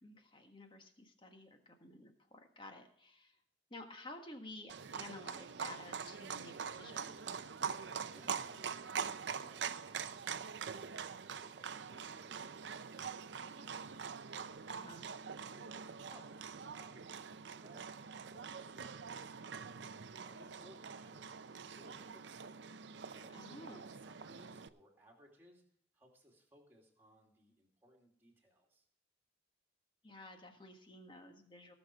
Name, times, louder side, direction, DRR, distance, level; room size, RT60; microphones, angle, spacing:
voice 1, 0.0-3.4 3.7-7.2 14.7-15.1 23.3-23.9 30.0-31.7, left 2 dB, 25° left, 5 dB, 1.5 m, -53 dB
Livestock farm animals working animals, 4.7-24.7, right 6 dB, 70° right, 0.6 m, -44 dB
voice 2, 8.1-13.9 14.7-19.3 20.2-22.5 23.1-25.6 25.9-28.9, equal, 10° right, -1 dB, 2.6 m, -64 dB
17.5 x 6.6 x 4.9 m, 0.66 s
head